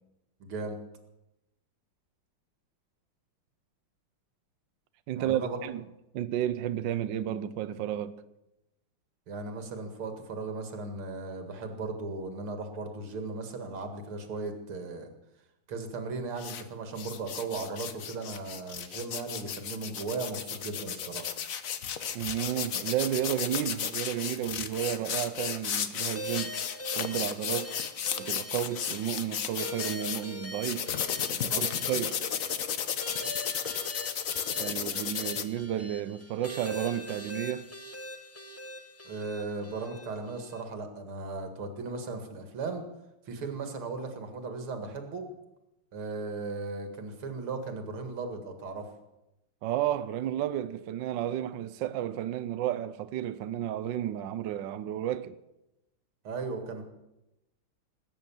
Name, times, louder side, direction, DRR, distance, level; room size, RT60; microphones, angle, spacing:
voice 1, 0.4-0.8 5.1-5.6 9.3-15.1 15.7-21.3 31.5-31.7 39.0-42.8 43.3-45.3 45.9-48.9 56.2-56.8, right 3 dB, 90° right, 2.8 m, -37 dB
voice 2, 5.1-5.8 6.1-8.2 22.1-26.5 27.0-27.8 28.2-30.9 31.3-32.2 34.6-37.7 49.6-55.4, right 11 dB, 70° right, 1.3 m, -32 dB
sound 1, 16.4-16.6 17.0-30.2 30.6-35.4, left 8 dB, 50° left, 1.1 m, -34 dB
sound 2, 26.1-40.6, left 1 dB, 15° left, 0.5 m, -42 dB
19.5 x 9.3 x 7.2 m
omnidirectional pair, 2.3 m